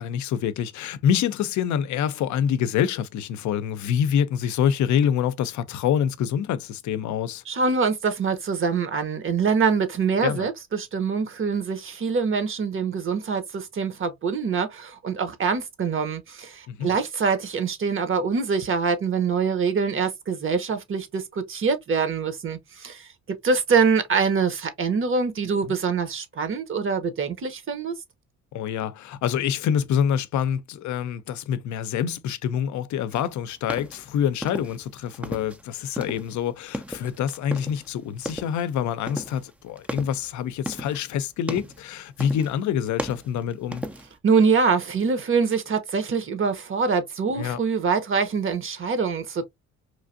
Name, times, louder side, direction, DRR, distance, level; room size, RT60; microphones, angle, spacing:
voice 1, 0.0-7.4 10.2-10.5 16.7-16.9 25.6-25.8 28.5-43.8 47.4-47.6, left 9 dB, 70° left, 0.5 m, -26 dB
voice 2, 7.5-27.9 44.2-49.5, right 5 dB, 45° right, 0.8 m, -24 dB
sound 1, 33.1-35.6 35.9-37.9 38.2-38.7 39.1-41.1 41.4-41.9 42.2-42.6 42.9-44.2, equal, 5° right, 0.4 m, -35 dB
3.1 x 2.5 x 2.5 m
cardioid pair, 90°, 30 cm